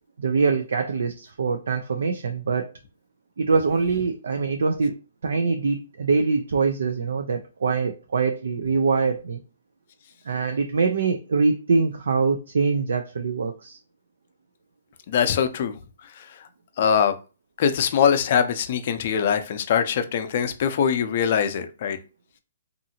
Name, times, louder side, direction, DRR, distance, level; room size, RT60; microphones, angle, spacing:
voice 1, 0.2-2.7 3.4-4.9 5.2-9.4 10.3-13.8, right 4 dB, 75° right, 0.3 m, -23 dB
voice 2, 15.1-15.7 16.2-16.4 16.8-17.2 17.6-22.0, left 7 dB, 50° left, 0.5 m, -22 dB
2.7 x 2.5 x 2.7 m
hypercardioid pair, 135°, 0 cm